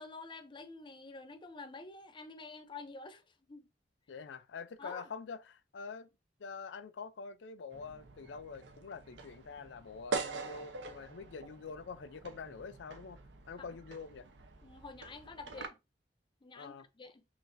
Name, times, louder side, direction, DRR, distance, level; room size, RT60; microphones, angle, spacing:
voice 1, 0.0-3.7 4.8-5.1 14.6-15.8 16.4-17.2, left 3 dB, 25° left, 0.5 m, -48 dB
voice 2, 4.1-6.1 6.4-13.2 13.5-14.3 16.5-16.9, left 5 dB, 80° left, 0.4 m, -46 dB
sound 1, 7.7-15.7, right 4 dB, 80° right, 0.7 m, -44 dB
5.7 x 2.5 x 2.6 m
head